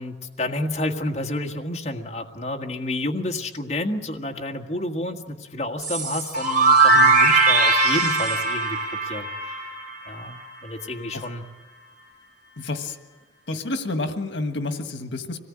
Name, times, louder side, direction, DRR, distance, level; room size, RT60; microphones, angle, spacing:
voice 1, 0.0-9.3 10.1-11.4, left 1 dB, 35° left, 1 dB, 1.7 m, -30 dB
sound 1, 5.8-10.5, right 3 dB, 45° right, 5.6 m, -20 dB
voice 2, 6.9-7.4 11.1-11.3 12.6-13.0 13.5-15.4, left 2 dB, 80° left, 7 dB, 1.6 m, -29 dB
25.5 x 19.0 x 8.7 m, 1.2 s
head